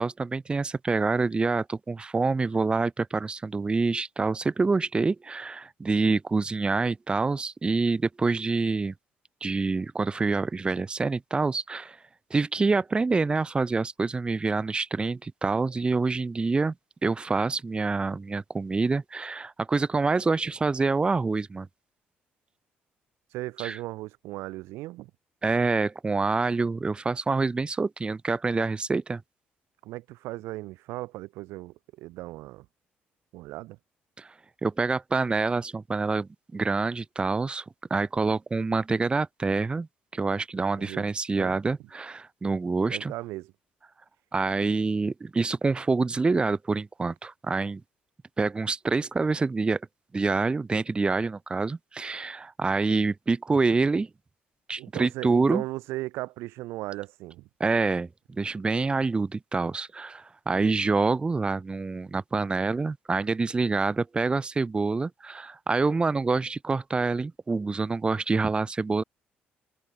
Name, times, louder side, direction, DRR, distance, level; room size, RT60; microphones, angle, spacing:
voice 1, 0.0-8.9 9.4-12.0 12.3-16.7 17.0-21.7 23.6-23.8 25.4-29.2 34.2-34.3 34.6-37.6 37.9-39.9 40.1-43.1 44.3-47.8 48.4-49.8 50.1-54.1 54.7-55.6 57.6-58.1 58.4-69.0, right 3 dB, 25° right, 0.7 m, -26 dB
voice 2, 23.3-25.1 29.8-32.7 33.3-33.8 40.8-41.1 41.4-41.6 42.9-43.5 54.8-57.5 60.5-60.8, right 19 dB, 85° right, 1.1 m, -37 dB
cardioid pair, 80°, 4 cm